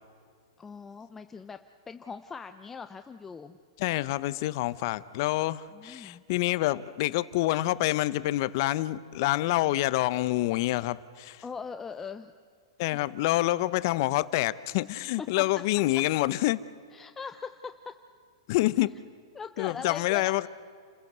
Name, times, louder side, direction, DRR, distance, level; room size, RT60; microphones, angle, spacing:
voice 1, 0.6-1.6 1.9-3.6 5.7-6.2 11.4-12.3 15.2-15.5 16.9-18.1 19.3-20.3, left 5 dB, 10° left, 9 dB, 0.7 m, -40 dB
voice 2, 3.8-11.4 12.8-16.6 18.5-18.9 19.6-20.5, left 17 dB, 50° left, 17 dB, 0.8 m, -27 dB
29.5 x 15.0 x 8.1 m, 2.2 s
hypercardioid pair, 150°, 3 cm